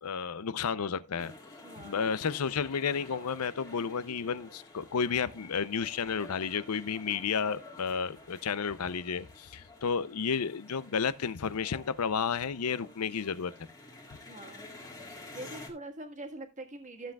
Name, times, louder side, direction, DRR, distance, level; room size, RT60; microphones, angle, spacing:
voice 1, 0.0-1.3 1.8-13.5, left 6 dB, 85° left, 0.6 m, -32 dB
sound 1, 1.2-15.7, left 2 dB, 15° left, 1.8 m, -51 dB
voice 2, 1.6-2.1 14.3-14.7 15.3-17.1, right 2 dB, 35° right, 1.6 m, -44 dB
14.0 x 7.6 x 2.3 m
head